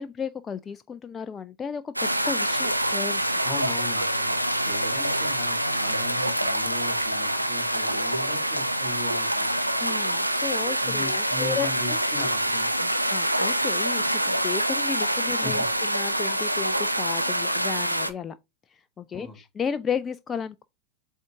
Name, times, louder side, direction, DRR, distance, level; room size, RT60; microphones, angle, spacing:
voice 1, 0.0-3.4 9.8-12.0 13.1-15.6 15.9-18.4 18.7-20.6, left 6 dB, 20° left, 0.3 m, -33 dB
sound 1, 2.0-18.1, right 1 dB, 90° right, 0.7 m, -26 dB
voice 2, 3.4-9.8 10.8-12.9 15.4-15.5 19.1-19.4, left 3 dB, 10° right, 3.8 m, -39 dB
7.8 x 3.7 x 3.5 m
figure-of-eight pair, 90°, 0 cm